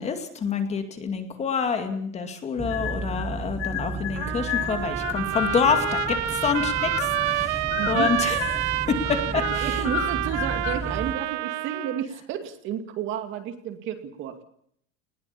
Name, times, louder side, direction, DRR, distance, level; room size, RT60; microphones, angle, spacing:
voice 1, 0.0-8.6 8.9-9.9, left 6 dB, 20° left, 7 dB, 2.4 m, -27 dB
sound 1, 2.6-11.1, right 3 dB, 5° right, 0.9 m, -34 dB
sound 2, 2.7-3.3 3.6-7.4 7.7-8.7 9.0-10.8, left 13 dB, 70° left, 7.6 m, -31 dB
Trumpet, 4.1-12.0, right 17 dB, 70° right, 1.3 m, -29 dB
voice 2, 7.7-8.1 9.6-14.4, right 9 dB, 35° right, 8 dB, 2.4 m, -31 dB
20.5 x 19.5 x 8.5 m, 0.67 s
supercardioid pair, 175°, 35 cm